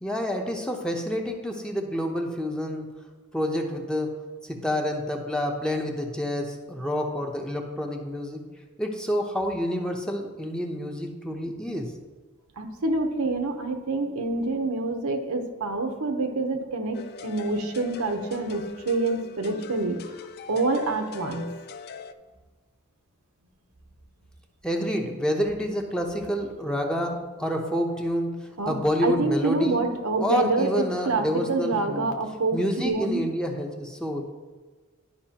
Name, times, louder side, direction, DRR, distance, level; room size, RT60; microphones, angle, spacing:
voice 1, 0.0-2.9 3.3-8.4 8.8-11.9 24.6-29.8 30.2-32.1 32.5-34.3, equal, 5° left, 1 dB, 0.8 m, -28 dB
voice 2, 12.6-20.0 20.5-21.4 28.6-28.7 29.0-33.2, right 2 dB, 85° right, 5 dB, 0.9 m, -27 dB
sound 1, 16.9-22.1, left 4 dB, 50° left, 0.4 m, -41 dB
11.5 x 5.4 x 2.9 m, 1.3 s
head